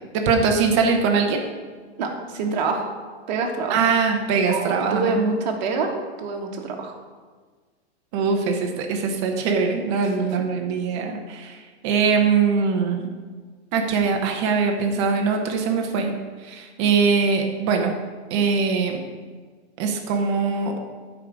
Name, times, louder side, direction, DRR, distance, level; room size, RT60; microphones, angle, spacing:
voice 1, 0.1-1.4 3.7-5.2 8.1-11.6 11.8-13.1 13.7-16.1 16.4-17.9 18.3-19.0 19.8-20.8, right 5 dB, 25° right, 3 dB, 1.0 m, -22 dB
voice 2, 2.0-2.9 3.3-3.8 4.5-5.9 6.2-7.0, right 4 dB, 40° right, 1 dB, 1.6 m, -26 dB
11.5 x 5.1 x 6.1 m, 1.5 s
supercardioid pair, 175°, 33 cm